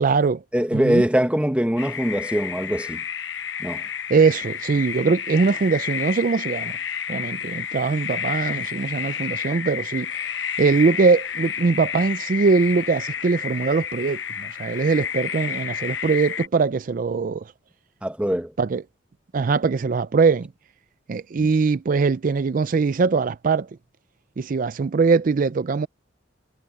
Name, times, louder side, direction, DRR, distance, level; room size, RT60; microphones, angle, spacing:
voice 1, 0.0-0.4 0.7-1.0 4.1-6.8 7.1-10.3 10.6-17.5 18.6-18.8 19.3-20.5 21.1-23.7 24.4-25.9, right 4 dB, 45° right, 0.4 m, -21 dB
voice 2, 0.5-3.0 3.6-3.8 18.0-18.5 21.4-21.5, equal, 5° right, 1.0 m, -22 dB
sound 1, 1.8-16.5, left 8 dB, 75° left, 0.9 m, -31 dB
head